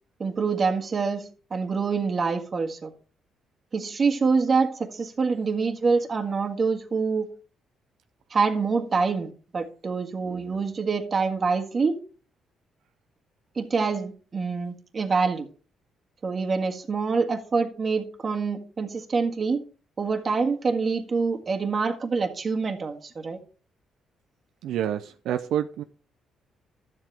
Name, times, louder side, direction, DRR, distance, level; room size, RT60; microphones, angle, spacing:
voice 1, 0.2-1.2 1.5-2.9 3.7-7.3 8.3-12.0 13.5-15.5 16.2-19.6 20.0-23.4, right 4 dB, 40° right, 1.7 m, -26 dB
voice 2, 24.6-25.8, right 10 dB, 80° right, 0.5 m, -28 dB
12.5 x 7.6 x 3.4 m
cardioid pair, 90°, 0 cm